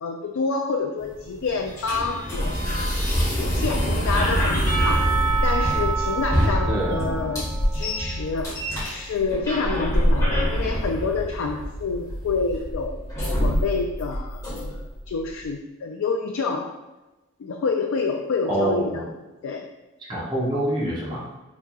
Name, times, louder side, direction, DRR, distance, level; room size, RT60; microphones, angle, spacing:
voice 1, 0.0-3.0 3.4-5.2 5.4-8.5 8.8-14.8 15.1-16.8 17.4-19.1 19.4-19.7, left 4 dB, 80° left, 2 dB, 0.3 m, -28 dB
sound 1, 1.0-15.0, equal, 15° left, 1.2 m, -25 dB
Percussion / Church bell, 4.7-8.6, right 6 dB, 55° right, 1.3 m, -29 dB
voice 2, 6.7-7.0 18.5-19.0 20.1-21.2, right 1 dB, 20° right, -6 dB, 0.8 m, -25 dB
4.2 x 3.4 x 2.4 m, 1.1 s
head